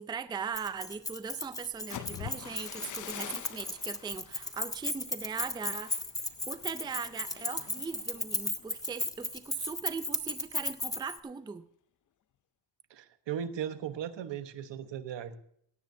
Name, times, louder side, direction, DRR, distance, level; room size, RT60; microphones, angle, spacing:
voice 1, 0.0-5.9 6.5-11.6, right 6 dB, 10° right, 12 dB, 0.4 m, -39 dB
Keys jangling, 0.5-11.2, left 2 dB, 10° left, 0.8 m, -35 dB
sound 1, 1.7-9.6 10.0-10.3 10.6-11.0, left 11 dB, 45° left, 0.6 m, -47 dB
voice 2, 12.9-15.4, right 9 dB, 80° right, 10 dB, 1.2 m, -37 dB
17.5 x 17.0 x 2.7 m, 0.68 s
wide cardioid pair, 165°, 43 cm